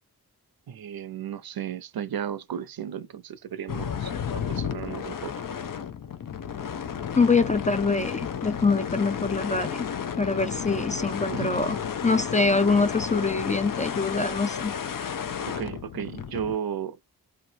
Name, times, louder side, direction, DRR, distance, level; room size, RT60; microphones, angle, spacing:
voice 1, 0.7-5.3 11.3-11.9 15.5-17.1, right 8 dB, 70° right, 0.6 m, -34 dB
sound 1, 3.7-16.6, left 7 dB, 60° left, 0.6 m, -32 dB
voice 2, 7.1-9.9 10.2-11.8 12.0-14.7, left 4 dB, 20° left, 0.3 m, -24 dB
2.9 x 2.3 x 2.7 m
cardioid pair, 65°, 38 cm